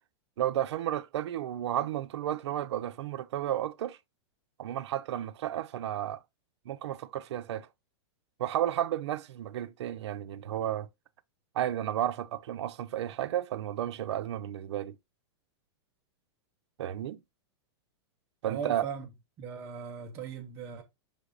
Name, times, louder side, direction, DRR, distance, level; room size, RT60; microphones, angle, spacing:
voice 1, 0.4-4.0 4.6-6.2 6.7-7.7 8.4-10.9 11.5-15.0 16.8-17.2 18.4-18.8, right 12 dB, 75° right, 0.5 m, -32 dB
voice 2, 18.4-19.1 19.4-20.8, right 7 dB, 15° right, 0.4 m, -38 dB
5.6 x 3.4 x 2.4 m
supercardioid pair, 180°, 14 cm